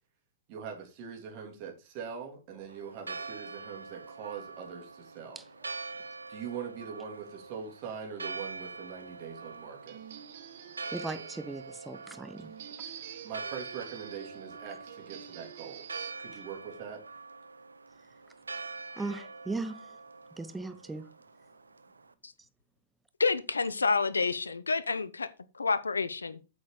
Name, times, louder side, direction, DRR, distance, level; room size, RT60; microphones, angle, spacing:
voice 1, 0.5-5.4 6.3-10.0 13.2-15.9 16.2-17.0, right 7 dB, 45° right, 3.3 m, -42 dB
Church bell, 2.7-22.1, right 4 dB, 90° right, 0.8 m, -45 dB
sound 1, 7.8-16.1, right 9 dB, 60° right, 1.6 m, -48 dB
voice 2, 10.9-12.5 19.0-20.0 20.4-21.1, right 3 dB, 10° right, 1.0 m, -38 dB
voice 3, 23.2-25.3 25.5-26.3, left 4 dB, 90° left, 0.8 m, -28 dB
8.5 x 6.3 x 5.0 m
hypercardioid pair, 110°, 0 cm